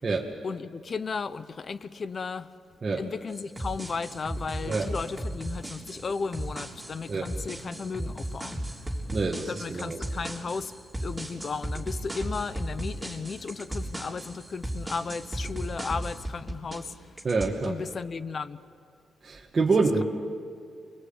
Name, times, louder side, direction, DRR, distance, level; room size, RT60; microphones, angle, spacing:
voice 1, 0.4-2.5 3.0-8.7 9.5-10.7 11.0-16.9 17.6-18.6, left 5 dB, 40° left, 0.9 m, -35 dB
sound 1, 3.3-16.9 17.2-17.7, right 1 dB, 10° right, 3.7 m, -36 dB
voice 2, 9.1-10.0 17.2-17.8 19.2-20.0, right 4 dB, 35° right, 1.9 m, -26 dB
29.0 x 22.5 x 8.9 m
cardioid pair, 115°, 0 cm